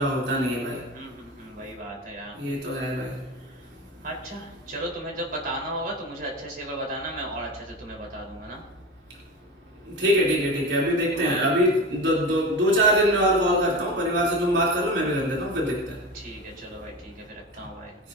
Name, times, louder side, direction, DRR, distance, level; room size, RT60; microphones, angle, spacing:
voice 1, 0.0-0.8 2.4-3.1 10.0-16.0, equal, 75° right, -5 dB, 3.3 m, -23 dB
voice 2, 0.9-2.4 3.4-3.7 4.0-8.6 11.1-11.4 16.1-18.0, right 1 dB, 55° right, -1 dB, 4.2 m, -35 dB
21.5 x 9.7 x 2.7 m, 1.1 s
head